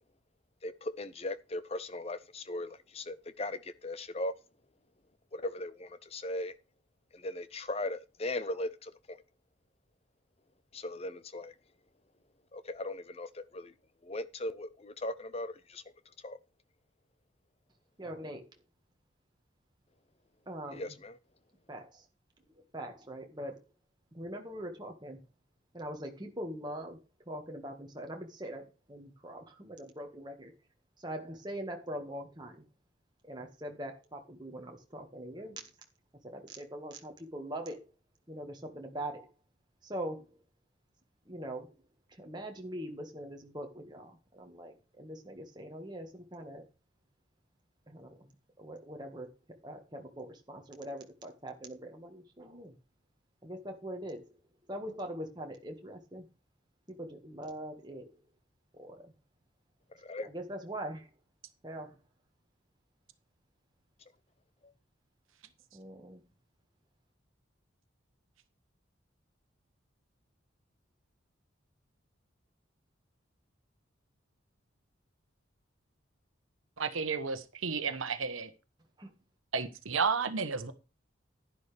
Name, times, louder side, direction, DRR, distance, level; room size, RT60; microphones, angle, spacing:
voice 1, 0.6-4.3 5.3-6.6 7.1-9.2 10.7-11.5 12.5-13.7 14.0-15.8 16.2-16.4 20.7-21.2 60.0-60.3, left 1 dB, 30° left, 0.7 m, -38 dB
voice 2, 18.0-18.5 20.5-20.9 21.7-22.0 22.5-23.6 24.1-25.2 25.7-27.0 27.3-30.5 31.0-32.6 33.2-35.7 36.2-37.9 38.3-39.3 39.8-40.4 41.3-41.7 42.1-46.6 47.9-48.3 48.6-49.3 49.6-52.7 53.4-54.3 54.7-56.2 56.9-58.1 58.7-59.1 60.2-61.1 61.6-62.0 65.7-66.2 79.0-79.1, right 1 dB, 20° right, 1.8 m, -42 dB
voice 3, 76.8-78.5 79.5-80.7, right 5 dB, 85° right, 1.2 m, -32 dB
11.0 x 10.5 x 3.5 m
head